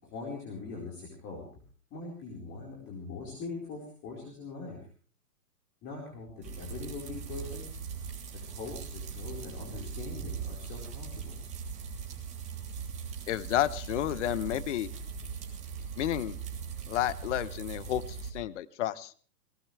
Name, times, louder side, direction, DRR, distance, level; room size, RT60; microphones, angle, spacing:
voice 1, 0.0-1.5 1.9-4.8 5.8-7.6 8.3-11.4, left 4 dB, 25° left, -2 dB, 4.6 m, -42 dB
sound 1, 6.4-18.3, right 6 dB, 15° right, 3.1 m, -40 dB
voice 2, 13.3-14.9 16.0-16.4 16.9-19.1, left 12 dB, 50° left, 17 dB, 1.0 m, -31 dB
21.5 x 19.0 x 3.4 m, 0.42 s
hypercardioid pair, 150°, 48 cm